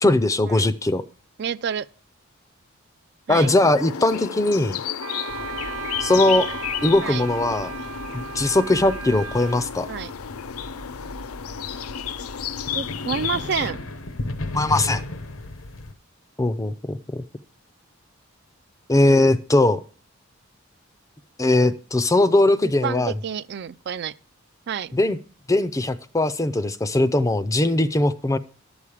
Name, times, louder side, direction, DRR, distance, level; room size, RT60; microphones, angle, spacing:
voice 1, 0.0-1.0 3.3-4.8 6.0-6.5 6.8-7.7 8.1-9.9 14.5-15.0 16.4-17.2 18.9-19.8 21.4-23.1 24.9-25.2 25.5-28.4, left 2 dB, 15° left, 0.4 m, -20 dB
voice 2, 1.4-1.9 3.3-3.5 7.0-7.2 9.9-10.1 12.7-13.8 22.6-24.1 24.7-25.0, right 7 dB, 50° right, 0.4 m, -29 dB
sound 1, 3.3-13.7, left 8 dB, 85° left, 0.5 m, -32 dB
Wind instrument woodwind instrument, 5.0-9.6, right 6 dB, 80° right, 0.9 m, -36 dB
sound 2, 5.3-15.9, left 2 dB, 70° left, 0.9 m, -36 dB
11.5 x 7.2 x 4.9 m
head